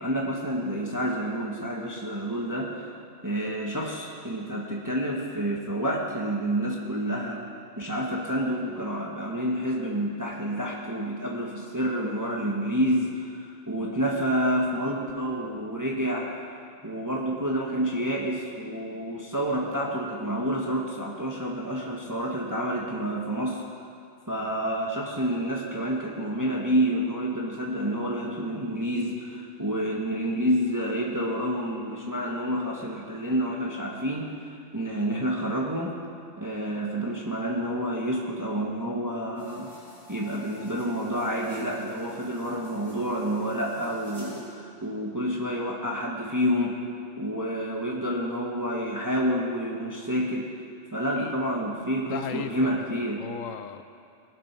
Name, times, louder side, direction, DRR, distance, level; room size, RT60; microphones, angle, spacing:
voice 1, 0.0-2.9 3.2-7.4 7.8-16.4 16.8-23.6 24.3-35.9 36.4-39.7 40.1-46.8 47.2-50.5 50.9-53.3, equal, 15° right, -2 dB, 1.3 m, -29 dB
sound 1, 39.3-44.5, equal, 85° right, 4.6 m, -50 dB
voice 2, 52.0-52.9 53.2-53.8, left 9 dB, 85° left, 10 dB, 1.1 m, -36 dB
20.5 x 7.5 x 5.9 m, 2.5 s
omnidirectional pair, 1.3 m